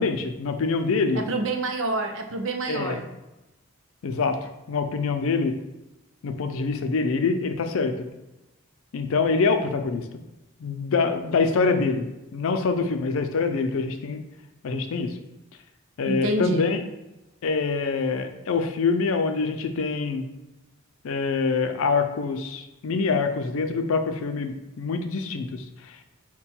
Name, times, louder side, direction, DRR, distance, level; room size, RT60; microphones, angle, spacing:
voice 1, 0.0-1.2 2.7-3.0 4.0-4.4 4.7-5.6 6.2-8.1 8.9-10.1 10.6-12.1 12.3-14.2 14.6-15.1 16.0-16.8 17.4-20.3 21.0-26.0, left 4 dB, 70° left, 7 dB, 0.4 m, -25 dB
voice 2, 1.1-3.1 16.1-16.7, right 2 dB, 60° right, 5 dB, 0.5 m, -27 dB
4.5 x 2.2 x 4.3 m, 1.0 s
head